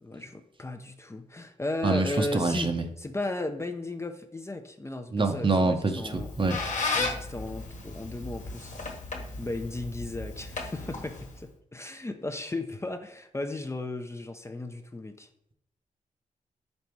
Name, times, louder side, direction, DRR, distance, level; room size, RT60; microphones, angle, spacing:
voice 1, 0.0-2.7 3.0-6.3 6.9-8.7 9.4-15.3, left 2 dB, 20° left, 6 dB, 0.6 m, -35 dB
voice 2, 1.8-2.8 5.1-6.6, right 3 dB, 35° right, 6 dB, 0.8 m, -26 dB
Squeak, 6.0-11.5, left 3 dB, 60° left, 1.3 m, -35 dB
5.4 x 4.1 x 4.6 m, 0.76 s
cardioid pair, 65°, 14 cm